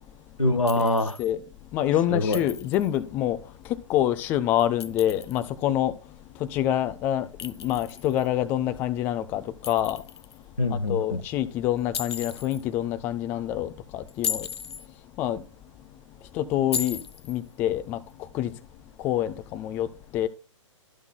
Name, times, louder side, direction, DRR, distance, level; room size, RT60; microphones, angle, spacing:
voice 1, 0.4-1.2 2.1-2.4 10.6-11.2, left 2 dB, 90° left, 0.9 m, -24 dB
Chink clink, 0.7-1.3 2.3-3.0 4.6-5.5 7.4-8.3 9.6-10.4 11.9-12.6 14.1-14.9 16.7-17.4, left 7 dB, 55° left, 0.6 m, -35 dB
voice 2, 1.7-3.4 3.9-5.9 6.5-10.0 10.7-14.5 15.2-15.4 16.3-17.0 17.3-18.0 18.3-18.5 19.0-19.9 20.1-20.3, left 12 dB, 10° left, 0.3 m, -26 dB
13.0 x 5.8 x 2.2 m
figure-of-eight pair, 120°, 17 cm